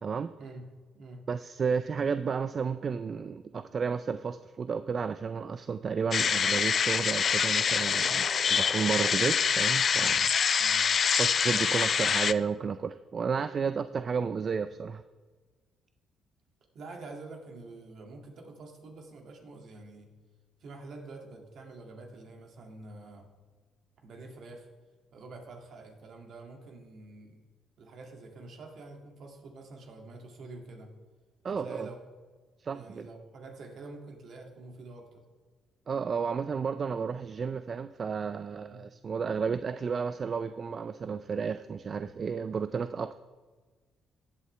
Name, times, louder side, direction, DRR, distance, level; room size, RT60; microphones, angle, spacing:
voice 1, 0.0-0.3 1.3-10.3 11.2-15.0 31.4-31.9 32.6-33.1 35.9-43.2, right 6 dB, 45° right, 11 dB, 0.3 m, -32 dB
voice 2, 0.9-1.3 10.6-10.9 16.7-20.1 20.6-23.3 24.0-24.7 25.1-27.4 27.8-30.9 31.4-32.0 32.7-35.2 38.7-38.8, right 3 dB, 65° right, 2 dB, 2.2 m, -47 dB
sound 1, 6.1-12.3, left 7 dB, 50° left, 0.4 m, -26 dB
15.0 x 8.3 x 3.3 m, 1.4 s
cardioid pair, 85°, 0 cm